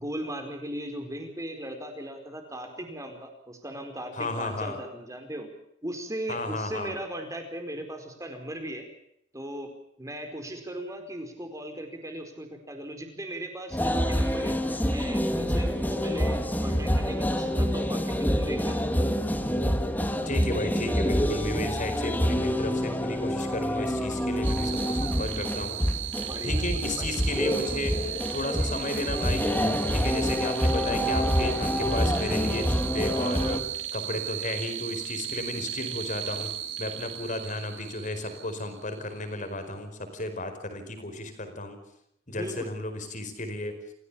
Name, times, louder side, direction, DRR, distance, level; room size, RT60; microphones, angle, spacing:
voice 1, 0.0-5.5 5.8-8.9 9.3-9.7 10.0-14.5 14.9-18.8 26.2-27.2 37.2-37.4 42.3-42.7, right 1 dB, 15° right, 5 dB, 4.7 m, -38 dB
voice 2, 4.1-4.8 6.3-6.9 20.2-25.8 26.4-27.9 28.3-29.4 29.9-36.5 36.8-41.8 42.3-43.7, left 2 dB, 40° left, 8 dB, 4.9 m, -34 dB
sound 1, 13.7-33.6, equal, 10° left, 2.0 m, -27 dB
sound 2, 24.4-39.3, right 11 dB, 75° right, 2.2 m, -36 dB
28.0 x 16.5 x 7.2 m, 0.75 s
head